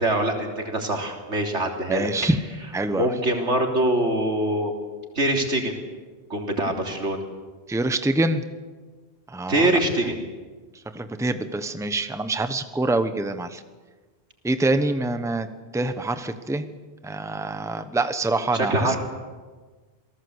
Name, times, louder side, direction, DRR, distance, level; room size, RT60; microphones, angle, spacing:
voice 1, 0.0-2.1 2.9-4.7 5.2-5.8 6.3-7.2 9.5-10.2 18.5-19.0, right 1 dB, 90° right, 2 dB, 3.7 m, -23 dB
voice 2, 1.9-2.4 2.7-3.1 7.7-8.4 9.3-9.8 10.9-13.6 14.4-15.5 15.7-16.7 17.0-19.0, right 2 dB, 5° right, 10 dB, 1.0 m, -25 dB
27.5 x 18.5 x 8.1 m, 1.4 s
omnidirectional pair, 1.2 m